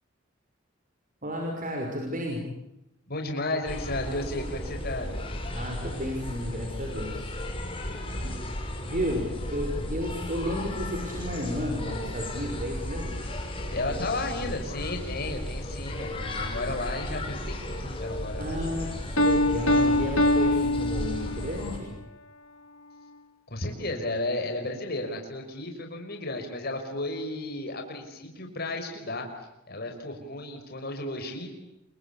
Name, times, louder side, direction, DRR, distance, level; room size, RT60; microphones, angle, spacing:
voice 1, 1.2-2.5 5.5-7.3 8.2-8.4 8.9-13.2 18.4-22.0, equal, 40° right, 1 dB, 5.9 m, -32 dB
voice 2, 3.1-5.3 7.8-8.3 13.7-18.9 23.5-29.3 29.7-31.5, left 2 dB, 50° left, 4 dB, 5.3 m, -33 dB
sound 1, 3.7-21.8, left 1 dB, 25° left, 5.4 m, -35 dB
Piano, 19.2-21.6, left 1 dB, 90° left, 3.4 m, -23 dB
28.0 x 24.0 x 8.6 m, 0.87 s
head